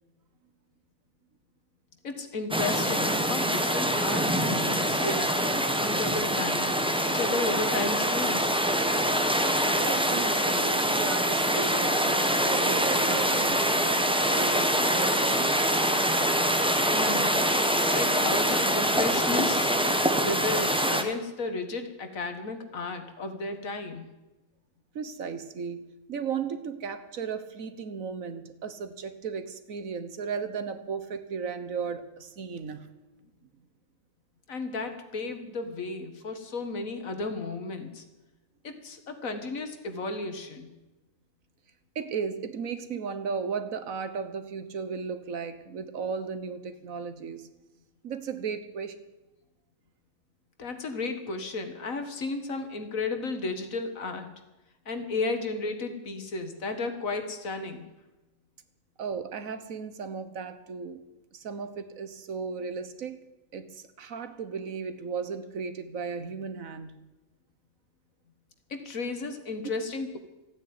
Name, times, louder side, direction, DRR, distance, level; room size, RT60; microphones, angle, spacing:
voice 1, 2.0-8.4 16.9-17.4 17.9-19.7 20.0-24.1 34.5-38.0 38.6-40.7 50.6-54.3 54.9-57.8 68.7-70.2, left 3 dB, 75° left, 7 dB, 2.0 m, -33 dB
sound 1, 2.5-21.0, equal, 5° right, 1.1 m, -25 dB
voice 2, 9.6-15.6 24.9-32.9 41.9-47.5 48.0-49.0 59.0-61.0 61.3-63.2 63.5-67.0, right 6 dB, 75° right, 11 dB, 1.6 m, -35 dB
14.5 x 9.3 x 9.5 m, 1.0 s
omnidirectional pair, 1.4 m